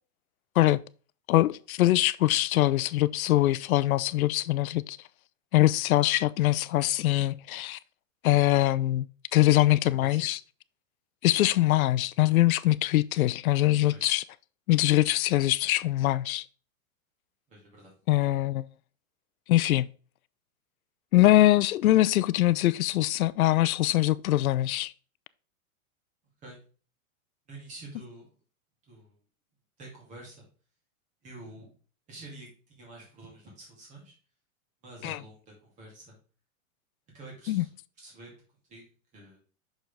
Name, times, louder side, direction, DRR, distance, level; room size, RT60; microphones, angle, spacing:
voice 1, 1.3-5.0 5.5-7.8 8.2-9.1 9.3-10.4 11.2-14.2 14.7-16.4 18.1-18.6 19.5-19.9 21.1-24.9 35.0-35.2 37.5-37.6, left 15 dB, 85° left, 0.6 m, -23 dB
voice 2, 10.0-10.4 13.9-14.2 17.5-17.9 26.4-26.6 27.5-28.3 28.9-29.2 29.8-30.4 31.2-31.7 32.1-34.1 34.8-36.2 37.1-37.7 38.0-38.3 38.7-38.9 39.1-39.4, right 2 dB, 15° right, 2.3 m, -47 dB
6.3 x 5.2 x 3.4 m
supercardioid pair, 175°, 42 cm